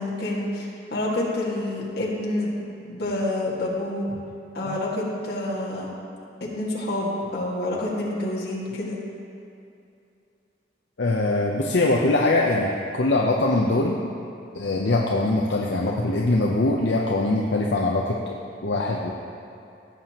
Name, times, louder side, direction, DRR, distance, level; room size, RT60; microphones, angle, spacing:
voice 1, 0.0-4.1 4.5-5.9 6.5-9.0, left 1 dB, 60° left, -5 dB, 1.9 m, -28 dB
voice 2, 11.0-14.1 14.5-18.4 18.6-19.1, left 2 dB, 80° left, -2 dB, 0.7 m, -22 dB
16.0 x 7.5 x 3.0 m, 2.6 s
head